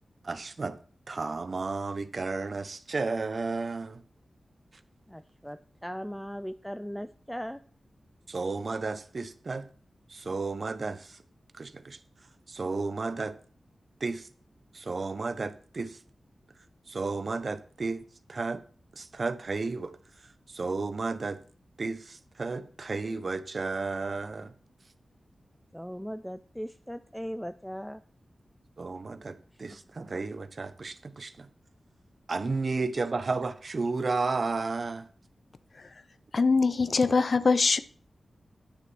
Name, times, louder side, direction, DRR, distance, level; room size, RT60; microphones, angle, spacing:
voice 1, 0.2-0.8 1.1-4.0 8.3-9.7 10.1-11.2 11.6-12.0 12.5-13.3 14.0-14.3 14.7-16.0 16.9-18.0 18.3-18.6 19.0-19.9 20.5-21.4 21.8-24.5 28.8-31.5 32.3-35.1, right 3 dB, 50° right, 0.9 m, -32 dB
voice 2, 5.1-7.6 25.7-28.0, equal, 5° left, 0.4 m, -38 dB
voice 3, 36.3-37.8, left 4 dB, 55° left, 0.6 m, -23 dB
10.0 x 6.7 x 6.1 m
wide cardioid pair, 115°, 0 cm